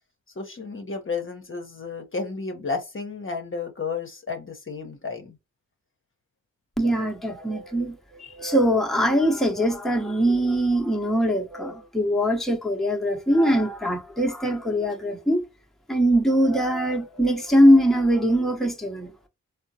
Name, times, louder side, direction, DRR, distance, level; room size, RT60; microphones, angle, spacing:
voice 1, 0.4-5.4, left 4 dB, 40° left, 0.8 m, -32 dB
voice 2, 6.8-15.4 15.9-19.1, equal, ahead, 0.9 m, -22 dB
3.5 x 2.0 x 2.7 m
cardioid pair, 45°, 33 cm